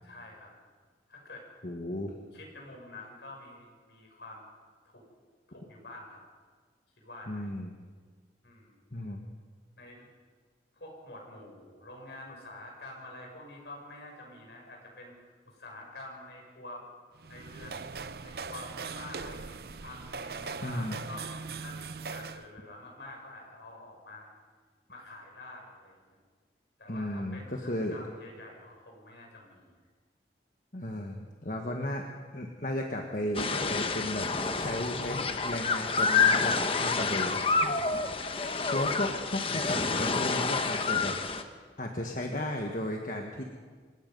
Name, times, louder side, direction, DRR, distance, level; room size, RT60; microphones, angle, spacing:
voice 1, 0.0-0.5 1.1-1.5 2.3-4.4 4.9-5.0 5.5-6.2 7.0-7.5 8.4-8.8 9.8-10.1 10.7-16.8 17.3-17.9 18.2-21.3 21.6-24.3 24.9-26.2 26.8-29.8, left 2 dB, 75° left, -1 dB, 6.9 m, -47 dB
voice 2, 1.6-2.1 7.3-7.8 8.9-9.3 20.6-21.0 26.9-28.0 30.7-32.0 32.3-38.3 38.7-41.2 41.8-43.4, left 1 dB, 50° left, 1 dB, 1.5 m, -35 dB
sound 1, 17.1-22.5, right 5 dB, 60° right, 0.6 m, -40 dB
sound 2, 33.3-41.4, left 4 dB, 30° left, 1.0 m, -28 dB
27.0 x 17.5 x 5.4 m, 1.5 s
head